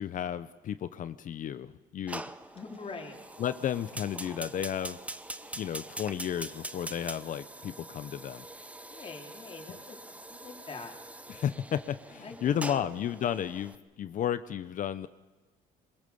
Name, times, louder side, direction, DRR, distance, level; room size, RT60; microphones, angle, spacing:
voice 1, 0.0-2.2 3.4-5.0 5.5-8.5 11.3-15.1, left 9 dB, 50° left, 13 dB, 0.8 m, -33 dB
Fire, 2.1-13.7, right 1 dB, 10° right, 0.8 m, -44 dB
voice 2, 2.5-3.2 8.9-10.0 10.3-10.9 12.2-13.0, left 4 dB, 35° left, 1 dB, 3.5 m, -44 dB
22.0 x 21.5 x 7.0 m, 1.2 s
cardioid pair, 110°, 17 cm